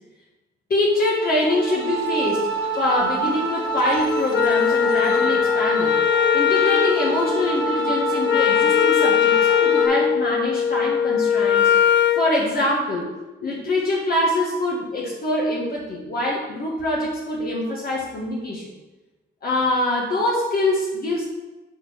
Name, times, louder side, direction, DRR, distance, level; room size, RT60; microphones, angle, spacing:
voice 1, 0.7-6.0 6.3-11.7 12.1-13.1 13.4-18.7 19.4-21.2, left 1 dB, 50° left, -4 dB, 1.8 m, -24 dB
sound 1, 0.9-9.9, right 2 dB, 20° left, 2.5 m, -27 dB
Wind instrument woodwind instrument, 4.3-12.3, left 8 dB, 70° left, 0.6 m, -20 dB
7.6 x 4.7 x 6.4 m, 1.1 s
cardioid pair, 90°, 20 cm